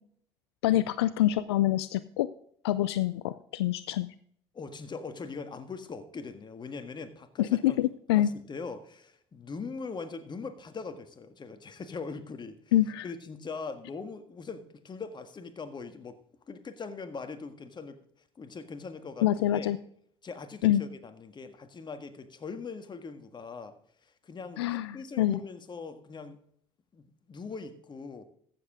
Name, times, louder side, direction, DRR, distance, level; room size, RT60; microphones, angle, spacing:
voice 1, 0.6-2.3 2.6-4.1 7.4-8.3 12.7-13.0 19.2-19.8 20.6-20.8 24.6-25.4, left 13 dB, 85° left, 16 dB, 0.4 m, -26 dB
voice 2, 4.5-7.8 8.1-12.6 13.0-16.2 16.5-18.0 18.3-19.7 20.2-23.7 24.0-26.4 26.9-28.2, left 4 dB, 35° left, 9 dB, 1.6 m, -41 dB
14.5 x 7.6 x 3.6 m, 0.64 s
hypercardioid pair, 60°, 13 cm